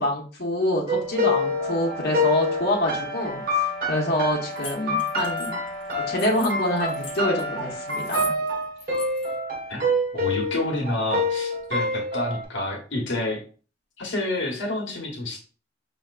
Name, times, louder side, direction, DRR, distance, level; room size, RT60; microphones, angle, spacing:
voice 1, 0.0-5.6 6.1-8.3, left 1 dB, 60° left, -2 dB, 1.0 m, -26 dB
sound 1, 0.9-12.4, left 1 dB, 50° right, 1.4 m, -27 dB
sound 2, 1.0-8.5, right 1 dB, 5° left, 1.1 m, -37 dB
sound 3, 4.5-7.4 7.9-8.5 8.8-9.3, left 4 dB, 30° left, 1.0 m, -39 dB
voice 2, 9.7-13.4 14.0-15.4, left 2 dB, 90° left, 1 dB, 1.1 m, -29 dB
5.5 x 2.8 x 2.4 m, 0.39 s
head